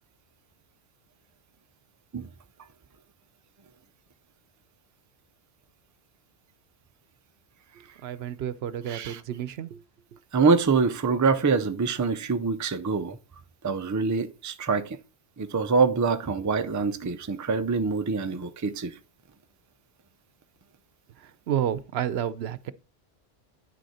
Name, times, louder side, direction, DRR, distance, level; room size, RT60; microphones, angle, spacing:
voice 1, 8.0-9.8 21.2-22.7, right 10 dB, 75° right, 0.8 m, -30 dB
voice 2, 8.9-9.2 10.3-13.2 13.6-15.0 15.4-18.9, right 4 dB, 25° right, 0.4 m, -25 dB
9.4 x 6.4 x 4.2 m
omnidirectional pair, 1.1 m